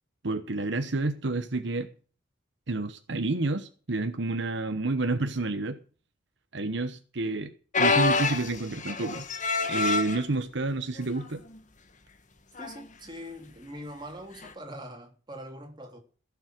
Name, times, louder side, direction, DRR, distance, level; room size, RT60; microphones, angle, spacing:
voice 1, 0.2-1.9 2.7-5.8 6.5-9.2 9.7-11.4, right 2 dB, 65° right, 1.0 m, -29 dB
sound 1, 7.7-10.2 11.0-11.2 11.5-11.6 12.6-12.8 14.4-14.5, left 4 dB, 40° left, 1.5 m, -26 dB
voice 2, 12.6-16.0, equal, 25° right, 3.4 m, -42 dB
15.5 x 7.2 x 6.5 m
head